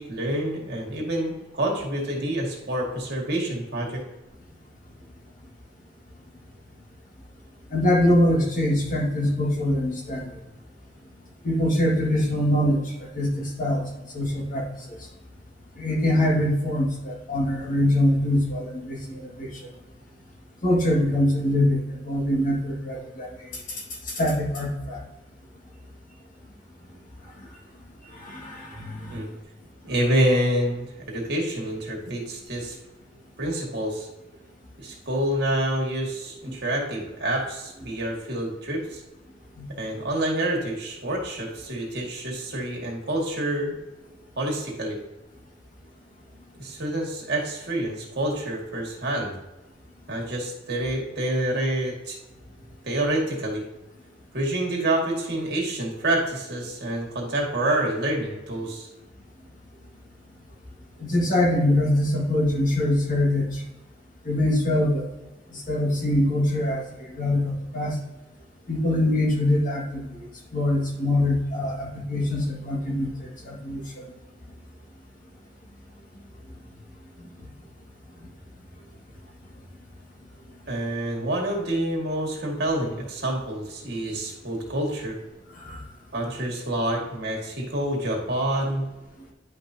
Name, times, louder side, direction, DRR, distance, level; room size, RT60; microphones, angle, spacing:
voice 1, 0.0-4.0 29.1-29.3 29.8-32.8 33.4-34.1 34.8-39.0 39.8-43.8 44.4-45.0 46.6-49.4 50.1-52.2 52.8-53.6 54.3-58.9 80.7-85.2 86.1-88.8, right 1 dB, 60° right, -1 dB, 2.1 m, -27 dB
voice 2, 7.7-10.2 11.4-12.8 13.1-13.8 14.1-14.6 15.8-19.5 20.6-23.3 24.2-25.0 28.2-29.2 39.6-39.7 61.0-63.6 64.2-65.0 65.5-66.8 67.1-68.0 68.7-70.1 70.5-73.8 85.6-85.8, left 1 dB, 45° left, -2 dB, 1.9 m, -23 dB
10.5 x 5.3 x 2.8 m, 1.0 s
head